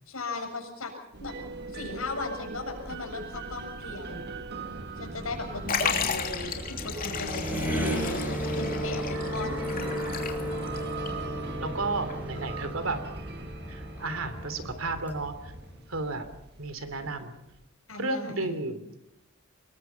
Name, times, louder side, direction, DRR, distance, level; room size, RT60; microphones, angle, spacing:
voice 1, 0.1-0.9 1.2-1.4 1.7-4.3 5.0-9.9 17.9-18.6, left 2 dB, 80° left, 3 dB, 7.2 m, -37 dB
sound 1, 1.1-17.7, right 3 dB, 50° right, 1.6 m, -41 dB
sound 2, 4.5-16.0, equal, 10° right, 6.0 m, -35 dB
Liquid, 5.7-10.8 11.1-11.2 12.1-12.2, left 6 dB, 45° left, 3.1 m, -33 dB
voice 2, 11.6-13.0 13.7-15.5 15.9-16.2 16.6-17.3 17.9-18.9, right 3 dB, 75° right, 10 dB, 3.1 m, -33 dB
25.5 x 22.0 x 5.8 m, 0.87 s
head